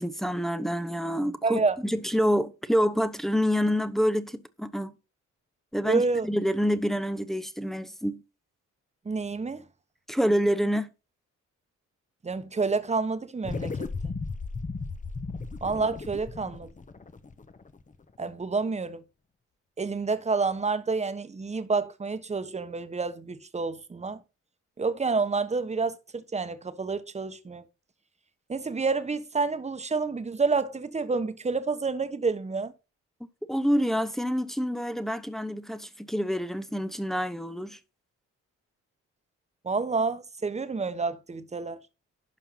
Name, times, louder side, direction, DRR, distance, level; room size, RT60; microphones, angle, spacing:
voice 1, 0.0-5.0 5.7-8.2 10.1-10.9 33.5-37.8, equal, ahead, 0.9 m, -27 dB
voice 2, 1.4-1.8 5.8-6.3 9.0-9.6 12.2-14.1 15.6-16.7 18.2-19.0 19.8-24.2 24.8-27.6 28.5-32.7 39.6-41.8, right 4 dB, 20° right, 1.2 m, -29 dB
sound 1, 13.4-18.1, left 4 dB, 25° left, 1.0 m, -36 dB
11.5 x 4.5 x 5.7 m
cardioid pair, 90°, 30 cm